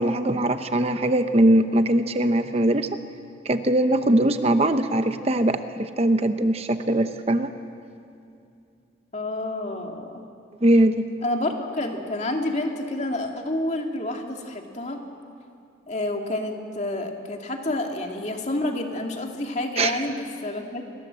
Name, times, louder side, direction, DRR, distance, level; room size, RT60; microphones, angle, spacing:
voice 1, 0.0-2.9 3.4-7.5 10.6-11.1 19.8-20.0, right 1 dB, 35° right, 9 dB, 0.9 m, -21 dB
voice 2, 9.1-10.2 11.2-15.0 15.9-20.8, left 1 dB, 40° left, 3 dB, 2.5 m, -29 dB
29.0 x 21.0 x 7.7 m, 2.5 s
head